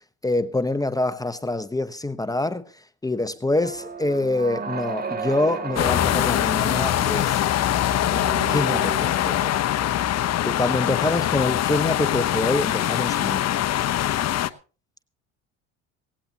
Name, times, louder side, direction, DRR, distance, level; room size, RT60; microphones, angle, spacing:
voice 1, 0.2-2.6 3.0-7.4 8.5-9.5 10.4-13.6, left 2 dB, 10° left, 0.9 m, -25 dB
sound 1, 3.6-9.6, right 5 dB, 25° right, 2.3 m, -35 dB
sound 2, 5.8-14.5, left 12 dB, 45° left, 0.9 m, -23 dB
18.0 x 17.5 x 2.9 m
supercardioid pair, 100°, 36 cm